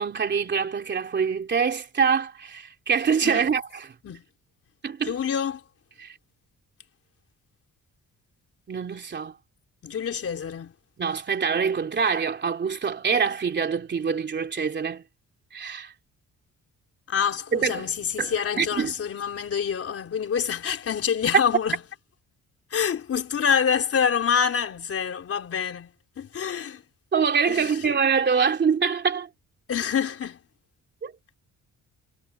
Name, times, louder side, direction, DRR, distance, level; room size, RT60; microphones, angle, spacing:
voice 1, 0.0-3.9 4.8-5.1 6.0-6.1 8.7-9.3 11.0-15.0 15.5-15.9 17.5-17.9 18.2-18.9 27.1-29.3 31.0-31.1, right 6 dB, 35° right, 3.0 m, -25 dB
voice 2, 5.0-5.6 9.8-10.7 17.1-21.8 22.7-26.8 27.5-27.8 29.7-30.4, left 7 dB, 45° left, 4.0 m, -26 dB
cardioid pair, 175°, 33 cm